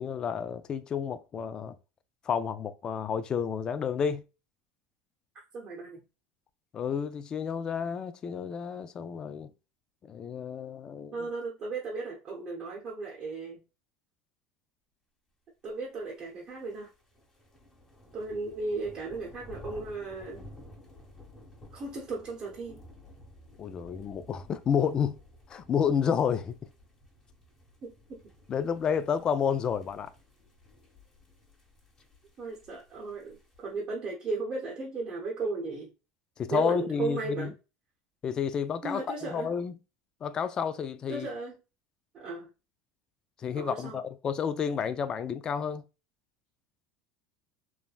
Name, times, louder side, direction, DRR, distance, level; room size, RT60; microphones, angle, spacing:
voice 1, 0.0-1.8 2.3-4.2 6.7-9.5 10.1-11.2 23.6-25.2 25.5-26.6 28.5-30.1 36.4-37.5 38.2-39.7 40.2-41.3 43.4-45.8, left 7 dB, 35° left, 0.3 m, -30 dB
voice 2, 5.5-6.0 11.1-13.6 15.6-16.9 18.1-20.4 21.7-22.8 27.8-28.2 32.4-35.9 36.5-37.5 38.8-39.5 41.1-41.5 42.1-42.5 43.5-44.0, right 3 dB, 40° right, 0.8 m, -35 dB
sound 1, 16.2-33.8, left 1 dB, 20° left, 1.2 m, -53 dB
3.3 x 2.1 x 2.4 m
supercardioid pair, 110°, 2 cm